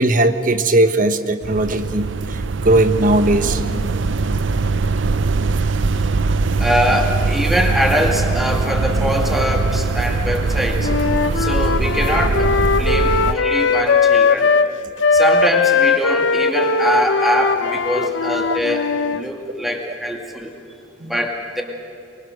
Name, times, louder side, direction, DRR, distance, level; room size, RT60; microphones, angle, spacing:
voice 1, 0.0-3.6 5.6-5.7 6.2-6.4 11.2-11.3 18.0-18.1 21.0-21.1, right 2 dB, 45° right, 9 dB, 1.1 m, -18 dB
sound 1, 1.4-13.3, right 3 dB, 85° right, 0.6 m, -21 dB
voice 2, 6.6-10.9 11.3-14.5 15.1-18.9 19.1-20.5 21.1-21.6, equal, ahead, 1 dB, 2.3 m, -22 dB
Wind instrument woodwind instrument, 10.8-14.7 15.0-19.2, left 4 dB, 85° left, 0.6 m, -18 dB
24.0 x 23.5 x 6.6 m, 2.6 s
head